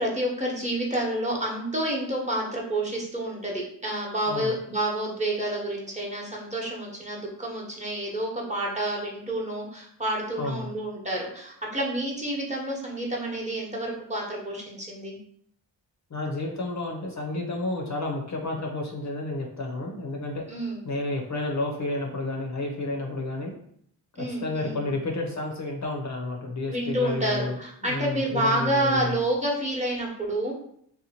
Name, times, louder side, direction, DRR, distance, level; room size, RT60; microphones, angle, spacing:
voice 1, 0.0-15.2 20.5-20.8 24.1-24.9 26.7-30.5, right 1 dB, 15° right, -3 dB, 1.0 m, -29 dB
voice 2, 10.4-10.7 16.1-20.4 20.8-23.5 24.2-27.6 27.8-29.2, left 2 dB, 40° left, 0 dB, 0.6 m, -31 dB
2.8 x 2.1 x 2.8 m, 0.66 s
supercardioid pair, 45°, 46 cm